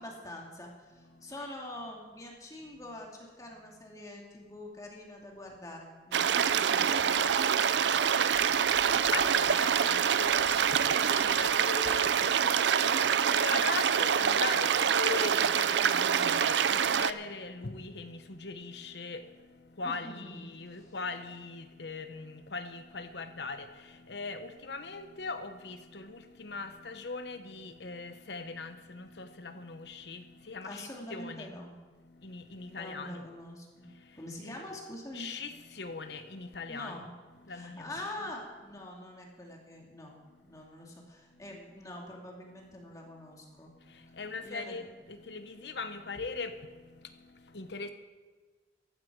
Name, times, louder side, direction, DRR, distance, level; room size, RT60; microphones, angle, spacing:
voice 1, 0.0-8.0 19.8-21.0 30.6-31.8 32.7-35.3 36.7-37.1 37.5-43.7 44.4-44.9, left 1 dB, 20° left, 2.3 m, -45 dB
voice 2, 0.9-1.5 2.8-3.0 3.7-4.0 6.1-6.4 7.2-7.3 7.8-31.5 31.9-33.3 33.8-34.6 34.9-38.0 38.7-38.9 40.4-40.7 41.3-41.6 43.8-47.9, left 4 dB, 70° left, 1.1 m, -41 dB
sound 1, 6.1-17.1, right 8 dB, 80° right, 0.5 m, -26 dB
14.5 x 12.5 x 4.7 m
head